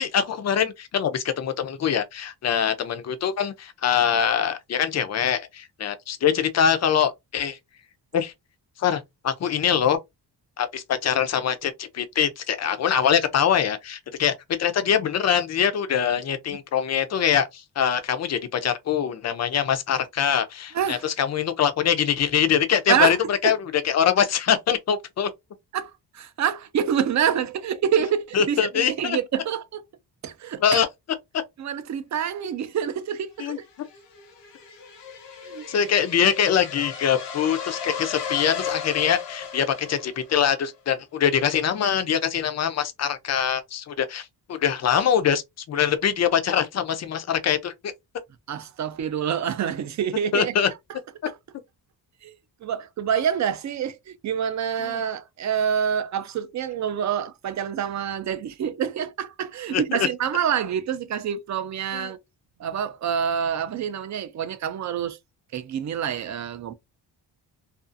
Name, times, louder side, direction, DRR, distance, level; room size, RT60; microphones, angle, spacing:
voice 1, 0.0-7.6 8.1-8.3 8.8-10.0 10.6-23.6 23.8-25.3 28.3-29.2 30.6-30.9 33.4-33.6 35.7-45.4 45.7-47.9 50.3-50.7 54.8-55.0 59.7-59.8 61.9-62.1, left 8 dB, 40° left, 0.4 m, -23 dB
voice 2, 25.7-29.8 30.2-30.8 31.6-33.6 35.4-35.7 48.5-50.5 50.9-51.0 51.3-51.4 52.2-62.2 62.6-65.2 65.5-66.7, right 8 dB, 45° right, 0.4 m, -27 dB
sound 1, 33.4-40.5, left 7 dB, 90° left, 0.9 m, -35 dB
2.5 x 2.3 x 2.4 m
wide cardioid pair, 135°, 41 cm